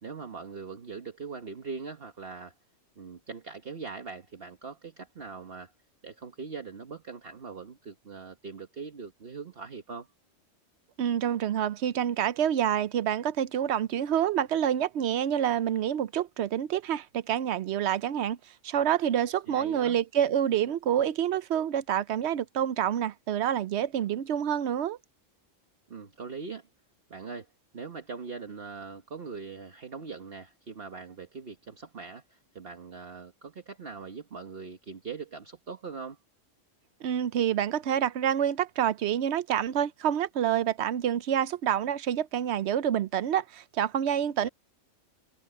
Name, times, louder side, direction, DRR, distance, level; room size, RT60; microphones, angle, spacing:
voice 1, 0.0-2.5 3.0-5.7 6.0-10.1 19.5-20.0 25.9-26.7 27.1-27.5 27.7-36.2 44.4-44.5, right 5 dB, 50° right, 1.5 m, -41 dB
voice 2, 11.0-18.4 18.6-25.0 37.0-44.5, right 10 dB, 65° right, 0.9 m, -27 dB
omnidirectional pair, 1.3 m